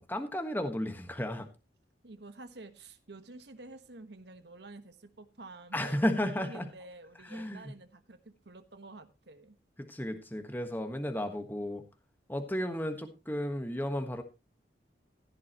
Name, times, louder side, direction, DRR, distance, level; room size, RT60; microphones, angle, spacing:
voice 1, 0.0-1.5 5.7-6.7 7.2-7.7 9.8-11.8 12.3-14.2, left 1 dB, 10° left, 6 dB, 1.3 m, -33 dB
voice 2, 2.0-8.2 8.4-9.5, right 2 dB, 65° right, 9 dB, 1.3 m, -49 dB
15.5 x 11.0 x 3.0 m, 0.27 s
head